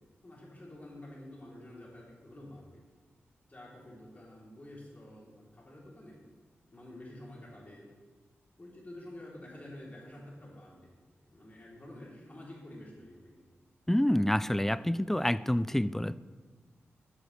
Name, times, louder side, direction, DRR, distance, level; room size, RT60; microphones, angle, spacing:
voice 1, 0.2-2.8 3.5-6.2 6.7-7.9 8.6-10.9 11.3-13.4, left 1 dB, 35° left, -5 dB, 3.3 m, -49 dB
voice 2, 13.9-16.2, left 1 dB, 5° left, 17 dB, 0.3 m, -27 dB
12.5 x 8.1 x 3.3 m, 1.4 s
cardioid pair, 50°, 5 cm